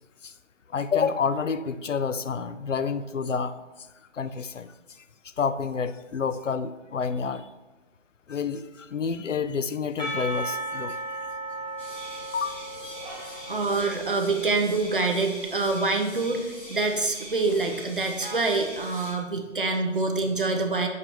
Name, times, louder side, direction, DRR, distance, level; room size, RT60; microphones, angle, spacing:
voice 1, 0.7-3.5 4.1-4.7 5.4-7.5 8.3-11.2 12.3-13.0 13.3-13.4, left 6 dB, 85° left, 12 dB, 0.6 m, -29 dB
Percussion / Church bell, 10.0-14.5, right 2 dB, 35° left, 2.2 m, -36 dB
sound 1, 11.8-19.1, equal, 10° left, 1.0 m, -43 dB
voice 2, 13.5-20.9, right 3 dB, 45° right, 3 dB, 0.9 m, -26 dB
6.2 x 4.8 x 4.4 m, 1.1 s
figure-of-eight pair, 165°, 36 cm